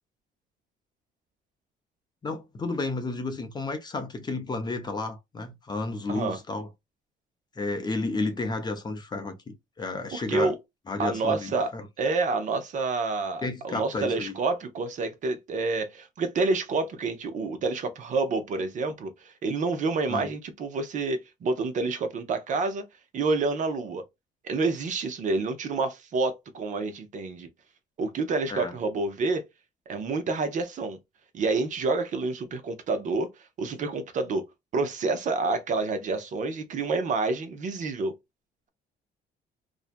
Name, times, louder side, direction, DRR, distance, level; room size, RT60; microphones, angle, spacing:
voice 1, 2.2-6.7 7.6-10.5 10.9-11.8 13.4-14.4 20.1-20.3 28.5-28.7, left 3 dB, 25° left, 0.6 m, -32 dB
voice 2, 10.1-10.6 11.0-11.7 12.0-22.8 23.1-24.0 24.4-27.5 28.0-29.4 29.9-31.0 31.3-33.3 33.6-34.5 34.7-38.1, right 3 dB, 50° right, 0.6 m, -28 dB
2.5 x 2.1 x 2.4 m
cardioid pair, 110°, 17 cm